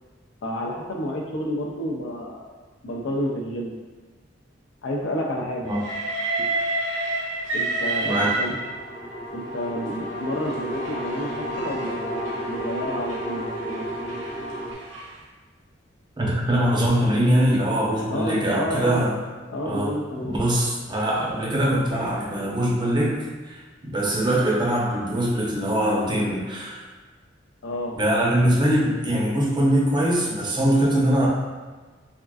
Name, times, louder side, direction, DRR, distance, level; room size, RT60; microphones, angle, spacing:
voice 1, 0.4-2.5 2.8-3.8 4.8-5.7 7.5-8.5 9.3-13.9 18.1-19.1 19.5-20.4 27.6-28.0, left 1 dB, 75° left, -1 dB, 0.5 m, -30 dB
Train, 5.7-9.1 9.9-15.2, right 2 dB, 75° right, 0.6 m, -31 dB
sound 1, 7.9-14.7, equal, 30° left, 0.6 m, -32 dB
voice 2, 16.2-19.1 19.7-26.8 27.9-31.3, right 1 dB, 25° right, -4 dB, 0.6 m, -22 dB
3.5 x 2.4 x 2.3 m, 1.3 s
head